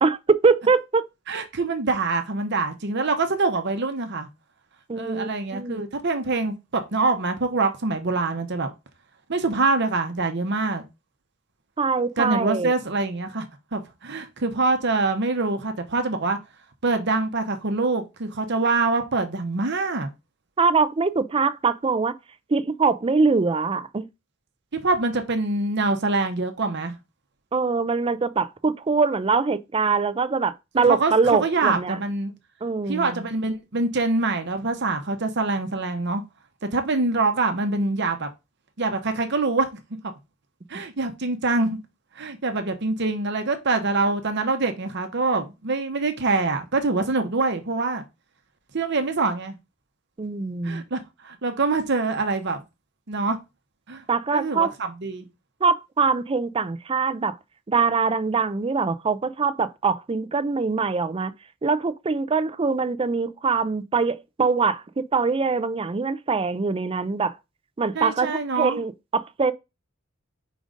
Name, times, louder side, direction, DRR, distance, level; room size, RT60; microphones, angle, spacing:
voice 1, 0.0-1.0 4.9-5.8 11.8-12.7 20.6-22.2 22.5-24.1 27.5-32.0 32.6-33.2 50.2-50.8 54.1-54.7 55.6-57.3 57.7-61.3 61.6-67.4 67.8-69.5, right 4 dB, 25° right, 0.4 m, -23 dB
voice 2, 1.3-4.3 4.9-8.7 9.3-10.8 12.2-13.4 13.7-16.4 16.8-20.1 24.7-27.0 30.8-32.3 32.9-36.2 36.6-38.3 38.8-39.7 40.0-40.1 40.7-41.8 42.2-48.0 48.7-49.6 50.6-52.6 53.1-53.4 53.9-54.0 54.3-55.3 67.9-68.8, right 3 dB, 60° right, 0.9 m, -25 dB
5.1 x 3.8 x 5.1 m
head